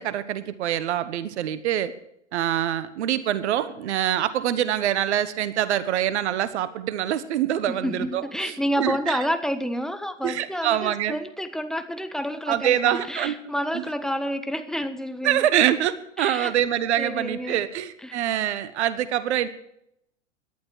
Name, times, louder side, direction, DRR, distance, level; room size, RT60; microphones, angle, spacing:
voice 1, 0.0-1.9 2.3-9.2 10.2-11.2 12.5-13.3 13.7-13.8 15.2-19.5, right 11 dB, 65° right, 15 dB, 1.4 m, -25 dB
voice 2, 7.7-15.5 16.2-16.5 17.0-17.6 18.0-18.2, equal, ahead, 9 dB, 1.3 m, -29 dB
18.0 x 11.5 x 4.7 m, 0.76 s
hypercardioid pair, 100°, 36 cm